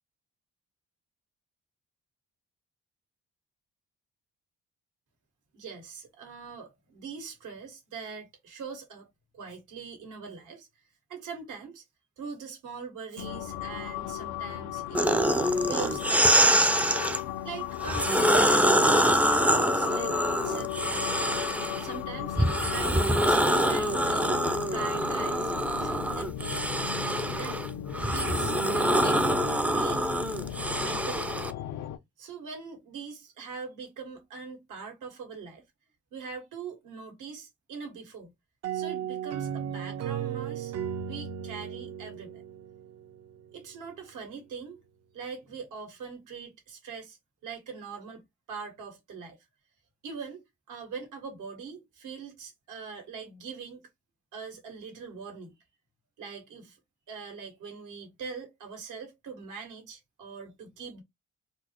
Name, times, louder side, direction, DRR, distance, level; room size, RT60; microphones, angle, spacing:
voice 1, 5.5-9.1 9.3-10.7 11.1-11.8 12.2-15.3 15.7-17.0 17.4-21.2 21.8-25.5 25.8-26.7 27.0-27.6 28.0-30.2 30.8-31.5 32.2-35.6 36.1-38.3 38.7-40.7 41.0-42.4 43.5-44.8 45.1-47.2 47.4-48.2 48.5-49.4 50.0-53.8 54.3-55.6 56.2-56.8 57.1-61.0, right 5 dB, 80° right, 1.8 m, -42 dB
sound 1, 13.2-32.0, left 11 dB, 85° left, 0.6 m, -36 dB
sound 2, 14.9-17.2 17.8-21.9 22.4-31.5, right 1 dB, 5° right, 0.4 m, -25 dB
sound 3, 38.6-43.3, right 9 dB, 55° right, 0.6 m, -35 dB
4.1 x 2.0 x 2.9 m
cardioid pair, 90°, 30 cm